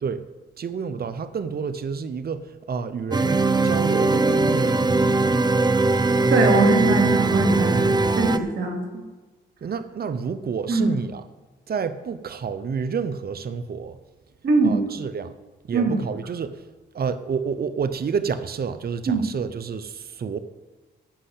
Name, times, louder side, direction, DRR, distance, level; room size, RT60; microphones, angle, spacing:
voice 1, 0.6-5.2 9.6-11.2 11.7-14.0 14.6-15.3 15.7-16.6 16.9-20.4, right 6 dB, 55° right, 12 dB, 0.8 m, -29 dB
sound 1, 3.1-8.4, right 3 dB, 20° right, 0.8 m, -20 dB
voice 2, 6.3-8.8 10.7-10.9 14.4-14.8 15.7-15.9 19.1-19.2, right 3 dB, 80° right, 1 dB, 2.8 m, -21 dB
13.5 x 5.6 x 8.5 m, 1.3 s
cardioid pair, 55°, 19 cm